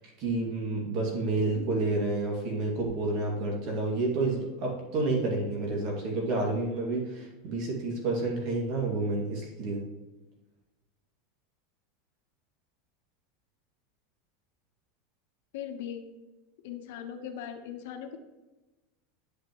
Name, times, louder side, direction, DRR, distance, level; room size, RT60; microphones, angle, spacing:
voice 1, 0.2-9.8, right 2 dB, 50° right, -1 dB, 2.2 m, -29 dB
voice 2, 15.5-16.1 16.6-18.2, left 9 dB, 70° left, 6 dB, 1.0 m, -39 dB
9.6 x 5.8 x 3.1 m, 1.1 s
supercardioid pair, 145°, 0 cm